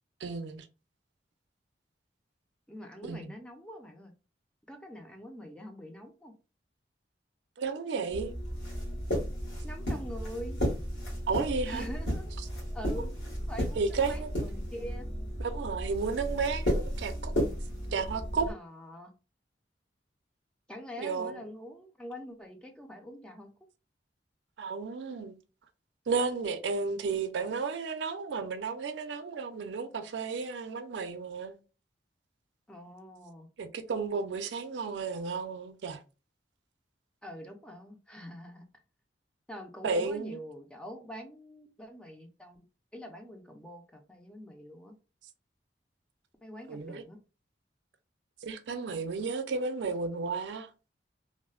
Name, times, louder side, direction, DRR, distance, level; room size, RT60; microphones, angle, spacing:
voice 1, 0.2-0.7 3.0-3.3 7.6-8.3 11.3-11.9 13.8-14.3 15.4-17.3 17.9-18.5 21.0-21.4 24.6-25.4 26.1-31.6 33.6-36.0 39.8-40.4 46.7-47.0 48.4-50.7, right 4 dB, 75° right, 0.4 m, -33 dB
voice 2, 2.7-4.1 4.7-6.3 9.6-10.6 11.6-12.3 12.7-15.1 18.5-19.1 20.7-23.5 32.7-33.5 37.2-38.6 39.5-42.7 42.9-44.9 46.4-47.2, equal, 5° left, 0.4 m, -45 dB
sound 1, 8.1-18.5, equal, 75° left, 1.4 m, -34 dB
3.1 x 2.0 x 2.3 m
head